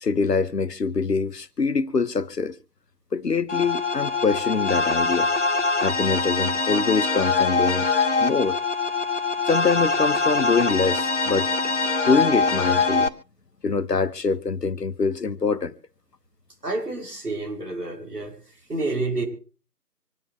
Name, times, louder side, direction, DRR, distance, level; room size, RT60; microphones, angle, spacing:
voice 1, 0.0-2.6 3.1-5.3 5.8-7.9 8.2-8.6 9.5-11.7 12.0-13.1 13.6-15.8, left 4 dB, 80° left, 1.2 m, -24 dB
sound 1, 3.5-13.1, left 4 dB, 45° left, 1.5 m, -23 dB
voice 2, 16.6-18.4 18.7-19.2, right 2 dB, 75° right, 7.6 m, -29 dB
26.0 x 9.5 x 3.4 m
figure-of-eight pair, 175°, 48 cm